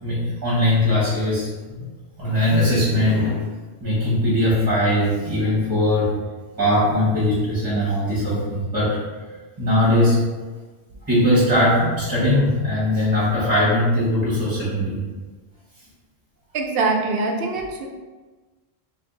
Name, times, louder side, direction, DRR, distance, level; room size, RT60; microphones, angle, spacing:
voice 1, 0.0-1.8 2.2-3.4 3.8-6.1 6.6-9.0 9.6-10.2 11.0-15.0, left 1 dB, 20° right, -10 dB, 1.1 m, -20 dB
voice 2, 16.5-17.9, right 3 dB, 70° right, 2 dB, 0.7 m, -23 dB
2.6 x 2.5 x 3.6 m, 1.3 s
omnidirectional pair, 1.0 m